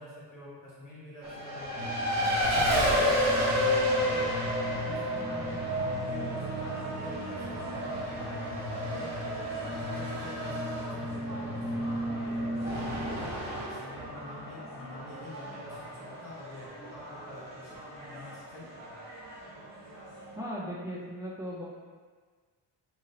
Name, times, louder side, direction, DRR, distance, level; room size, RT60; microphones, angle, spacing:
voice 1, 0.0-1.8 2.2-3.7 4.0-9.1 9.5-13.3 13.7-19.0, left 1 dB, 45° left, -8 dB, 1.3 m, -46 dB
Race car auto racing, 1.2-20.4, equal, 35° right, 0.8 m, -32 dB
sound 1, 1.7-13.1, equal, 25° left, 0.8 m, -38 dB
voice 2, 20.4-21.6, equal, 10° right, -6 dB, 0.3 m, -37 dB
2.9 x 2.9 x 2.7 m, 1.6 s
cardioid pair, 100°, 44 cm